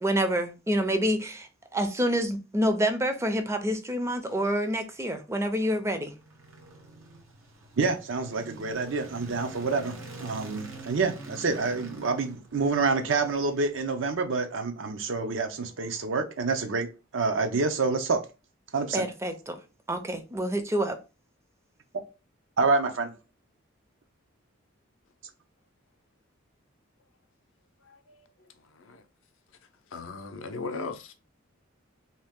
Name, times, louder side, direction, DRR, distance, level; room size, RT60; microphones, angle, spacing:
voice 1, 0.0-6.1 18.9-19.6 19.9-21.0, equal, 15° right, 0.5 m, -27 dB
sound 1, 5.8-14.2, right 2 dB, 85° right, 1.0 m, -46 dB
voice 2, 7.8-16.9 17.1-18.2 18.7-19.1 22.6-23.1, right 4 dB, 65° right, 0.6 m, -27 dB
voice 3, 27.8-28.3 28.6-29.0 29.9-31.1, left 4 dB, 70° left, 0.6 m, -38 dB
2.8 x 2.7 x 3.5 m
head